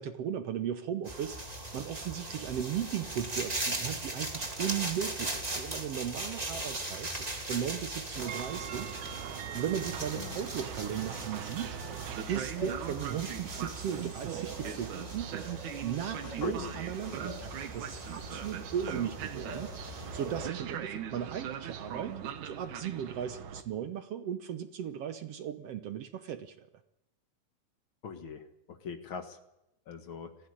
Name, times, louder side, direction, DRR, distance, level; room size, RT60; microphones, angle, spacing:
voice 1, 0.0-9.0 9.5-11.8 12.3-15.5 15.8-22.2 22.4-26.7, right 9 dB, 65° right, 9 dB, 1.7 m, -36 dB
sound 1, 1.0-20.5, right 1 dB, 15° right, 1.8 m, -40 dB
Train, 8.2-23.6, right 9 dB, 80° right, 2.7 m, -40 dB
voice 2, 16.2-16.7 17.1-17.4 28.0-29.4 29.9-30.4, left 6 dB, 50° left, 7 dB, 2.1 m, -42 dB
20.0 x 15.5 x 10.0 m, 0.88 s
omnidirectional pair, 3.4 m